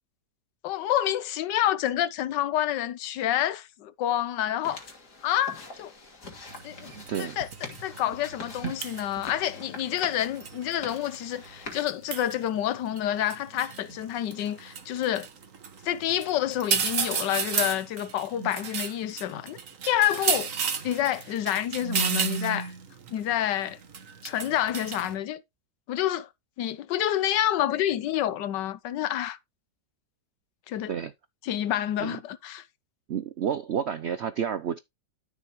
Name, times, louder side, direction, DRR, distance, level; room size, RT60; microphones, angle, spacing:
voice 1, 0.6-4.8 5.2-5.9 6.6-6.9 7.2-7.5 7.8-15.3 15.8-19.6 19.8-20.5 20.8-22.7 23.1-23.8 24.2-25.4 25.9-26.3 26.6-29.4 30.7-30.9 31.4-32.6, left 12 dB, 80° left, 1.4 m, -28 dB
sound 1, 4.6-11.8, left 3 dB, 65° left, 3.5 m, -44 dB
sound 2, 6.5-25.1, right 6 dB, 50° right, 1.5 m, -34 dB
voice 2, 33.1-34.8, right 8 dB, 75° right, 0.6 m, -30 dB
12.5 x 6.6 x 3.0 m
omnidirectional pair, 1.9 m